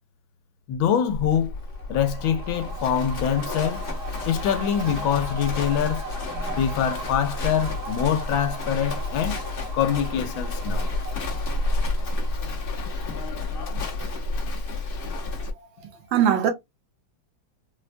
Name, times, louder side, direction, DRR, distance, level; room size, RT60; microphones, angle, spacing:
voice 1, 0.7-1.5 1.9-3.9 4.3-6.1 6.6-9.4 9.7-10.9, left 8 dB, 80° left, 1.4 m, -24 dB
Livestock farm animals working animals, 1.1-15.5, left 2 dB, 50° left, 0.6 m, -30 dB
sound 1, 1.6-13.1 13.4-13.5, right 4 dB, 60° right, 1.2 m, -39 dB
voice 2, 15.6-16.5, right 9 dB, 80° right, 1.6 m, -23 dB
4.2 x 2.2 x 2.5 m
omnidirectional pair, 2.1 m